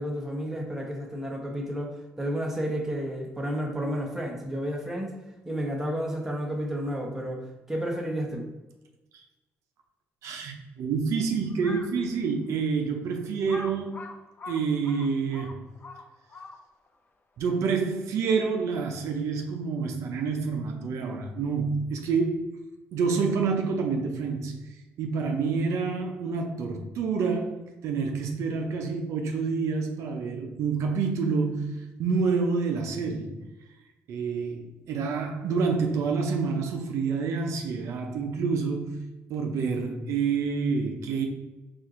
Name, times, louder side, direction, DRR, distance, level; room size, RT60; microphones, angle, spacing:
voice 1, 0.0-5.1 5.4-8.5, equal, 5° right, 0.8 m, -31 dB
voice 2, 10.2-14.0 14.5-15.7 17.4-22.5 22.9-24.6 25.0-31.7 32.0-33.4 34.1-39.0 39.3-41.3, right 5 dB, 80° right, 0.6 m, -28 dB
Crow, 11.5-12.0 12.6-12.7 13.5-16.9, left 3 dB, 35° left, 0.5 m, -42 dB
4.4 x 2.5 x 3.7 m
cardioid pair, 110°, 5 cm